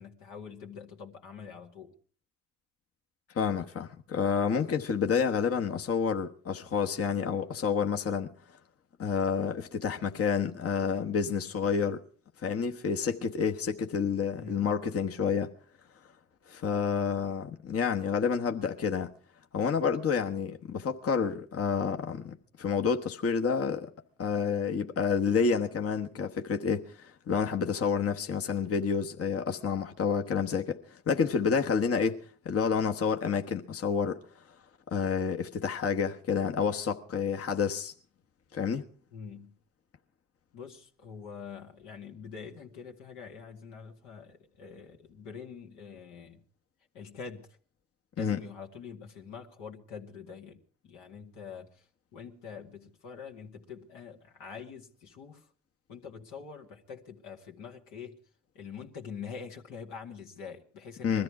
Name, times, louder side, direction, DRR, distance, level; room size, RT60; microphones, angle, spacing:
voice 1, 0.0-1.9 14.4-14.8 39.1-39.6 40.5-46.4 46.9-47.6 48.2-51.9 52.1-55.5 55.9-58.2 58.5-61.2, left 6 dB, 85° left, 2.2 m, -45 dB
voice 2, 3.3-8.3 9.0-12.0 12.4-15.5 16.5-19.1 19.5-23.9 24.2-34.2 34.9-37.9 38.5-38.9 48.2-48.4 61.0-61.2, left 6 dB, 50° left, 1.2 m, -29 dB
20.5 x 13.5 x 4.8 m
supercardioid pair, 60°, 31 cm